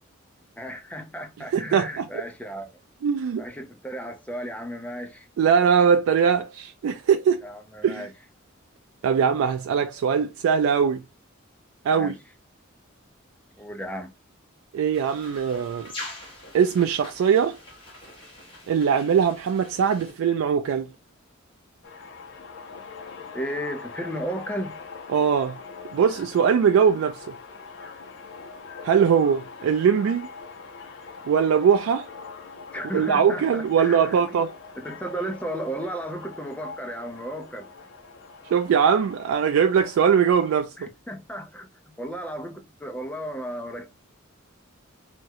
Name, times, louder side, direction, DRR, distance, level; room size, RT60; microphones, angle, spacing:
voice 1, 0.6-2.8 3.4-5.3 7.4-8.1 11.9-12.2 13.6-14.1 23.3-24.8 32.7-34.4 34.8-37.7 40.8-41.7 42.0-43.9, equal, 5° left, 0.4 m, -34 dB
voice 2, 1.5-2.1 3.0-3.4 5.4-7.4 7.8-8.1 9.0-11.0 11.9-12.1 14.7-15.9 16.5-17.6 18.7-20.9 25.1-25.6 25.9-27.2 28.8-30.3 31.3-32.1 32.9-34.5 38.4-40.9, right 7 dB, 85° right, 0.3 m, -21 dB
sound 1, 14.9-20.1, left 1 dB, 25° left, 1.7 m, -43 dB
sound 2, 21.8-40.6, left 4 dB, 60° left, 0.5 m, -43 dB
3.5 x 2.1 x 2.8 m
head